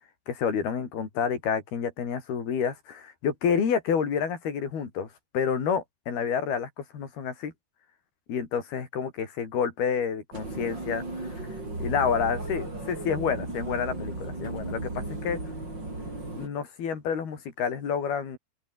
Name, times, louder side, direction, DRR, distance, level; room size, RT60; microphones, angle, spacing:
voice 1, 0.3-5.1 5.3-7.5 8.3-11.0 11.8-15.4 16.4-18.4, left 7 dB, 65° left, 6.0 m, -29 dB
sound 1, 10.3-16.5, right 2 dB, 25° right, 8.3 m, -35 dB
open air
omnidirectional pair, 4.9 m